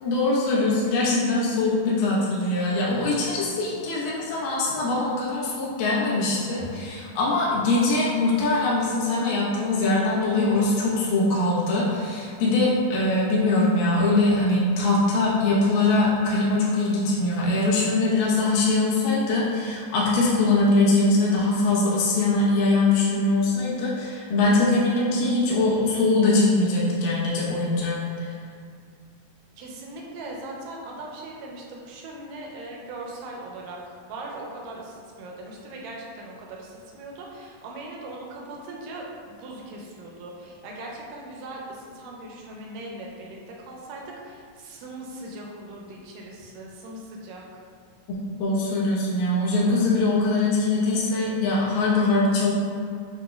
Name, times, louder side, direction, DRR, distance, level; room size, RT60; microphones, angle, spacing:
voice 1, 0.0-28.3 48.4-52.5, left 2 dB, 75° left, -7 dB, 2.5 m, -22 dB
voice 2, 29.6-47.6, right 2 dB, 80° right, -2 dB, 2.1 m, -39 dB
8.3 x 2.9 x 2.2 m, 2.3 s
omnidirectional pair, 4.2 m